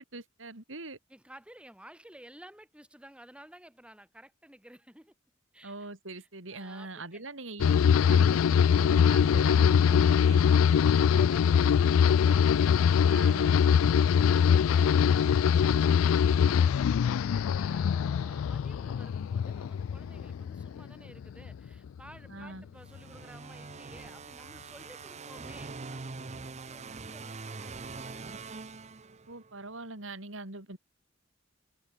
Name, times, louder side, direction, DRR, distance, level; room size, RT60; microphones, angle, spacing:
voice 1, 0.0-1.0 5.6-7.7 8.0-10.4 13.1-13.6 22.3-22.6 29.3-30.8, right 2 dB, 70° right, 4.0 m, -42 dB
voice 2, 1.1-5.1 5.5-5.7 6.1-7.2 10.6-28.3, right 1 dB, 5° right, 4.9 m, -53 dB
sound 1, 7.6-20.9 21.2-21.9, left 7 dB, 85° left, 0.3 m, -23 dB
sound 2, 22.8-29.5, right 4 dB, 35° right, 0.8 m, -43 dB
head